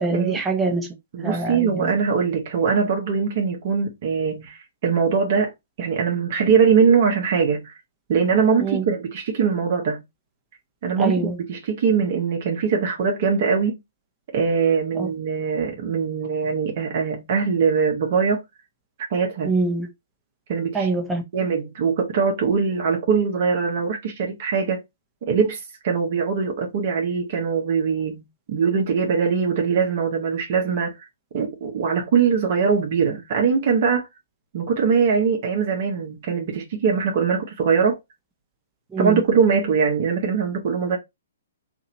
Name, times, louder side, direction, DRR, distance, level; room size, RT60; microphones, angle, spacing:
voice 1, 0.0-1.9 8.6-8.8 11.0-11.4 14.9-15.1 19.4-19.9 20.7-21.2 38.9-39.2, right 3 dB, 10° right, 1.0 m, -24 dB
voice 2, 1.1-5.5 5.8-7.7 8.1-10.0 10.8-13.7 14.3-18.4 19.1-19.6 20.5-20.9 21.3-24.8 25.3-31.0 31.3-34.1 34.5-38.0 39.0-41.0, right 6 dB, 50° right, 1.0 m, -22 dB
2.8 x 2.6 x 4.2 m
figure-of-eight pair, 125°, 0 cm